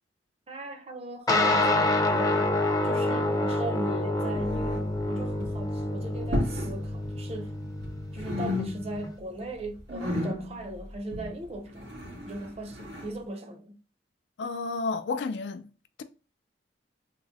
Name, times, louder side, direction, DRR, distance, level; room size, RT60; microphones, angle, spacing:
voice 1, 0.5-2.5 2.8-7.6 8.1-13.8, right 1 dB, 35° right, 0.5 m, -38 dB
sound 1, 1.3-9.1, left 2 dB, 20° left, 0.5 m, -27 dB
sound 2, 4.3-5.0 5.3-5.7 6.2-6.8 7.0-7.9 8.2-9.1 9.4-13.2, left 1 dB, 85° right, 2.0 m, -34 dB
voice 2, 14.4-15.7, left 4 dB, 75° left, 0.4 m, -31 dB
3.7 x 2.0 x 3.9 m
head